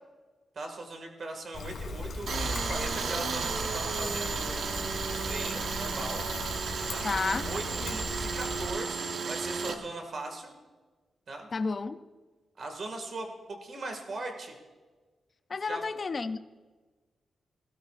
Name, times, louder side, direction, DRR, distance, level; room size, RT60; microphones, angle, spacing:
voice 1, 0.6-4.6 5.1-6.2 6.9-7.0 7.4-10.5 11.3-11.5 12.6-14.6 15.6-15.8, right 2 dB, 50° right, 4 dB, 2.0 m, -39 dB
Trickle dribble, 1.5-8.7, left 2 dB, 70° left, 2.3 m, -38 dB
Tools, 2.3-9.8, right 5 dB, 65° right, 1.0 m, -33 dB
voice 2, 7.0-7.5 11.5-12.0 15.5-16.4, left 4 dB, 35° left, 11 dB, 0.4 m, -31 dB
17.5 x 16.0 x 2.5 m, 1.3 s
wide cardioid pair, 150°, 0 cm